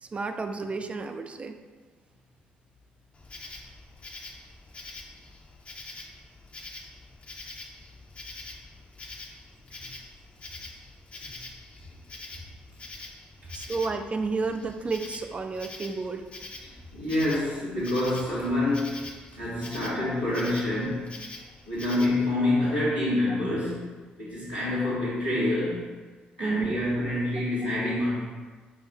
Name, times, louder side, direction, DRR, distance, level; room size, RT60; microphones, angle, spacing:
voice 1, 0.0-1.6 13.5-16.2 26.4-26.8, right 4 dB, 25° right, 7 dB, 0.3 m, -31 dB
Insect, 3.1-22.3, left 2 dB, 30° left, 0.6 m, -45 dB
voice 2, 16.9-21.1 21.7-25.9 26.4-28.1, left 1 dB, 90° right, -12 dB, 1.5 m, -27 dB
4.9 x 2.3 x 3.9 m, 1.4 s
figure-of-eight pair, 45°, 5 cm